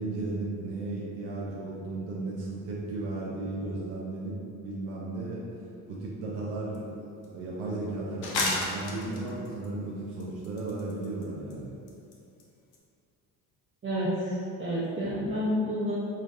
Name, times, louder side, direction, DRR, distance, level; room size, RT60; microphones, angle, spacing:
voice 1, 0.0-5.5 5.9-6.9 7.2-11.8 15.0-15.3, right 2 dB, 80° right, -5 dB, 0.7 m, -35 dB
sound 1, 6.7-6.8 7.2-7.3 8.2-9.7 10.2-11.2 11.5-11.6 11.9-12.1 12.4-12.5 12.7-12.8, left 2 dB, 60° left, 0.8 m, -31 dB
voice 2, 13.8-15.9, equal, 30° right, -10 dB, 0.9 m, -29 dB
3.8 x 3.1 x 2.6 m, 2.6 s
supercardioid pair, 80°, 42 cm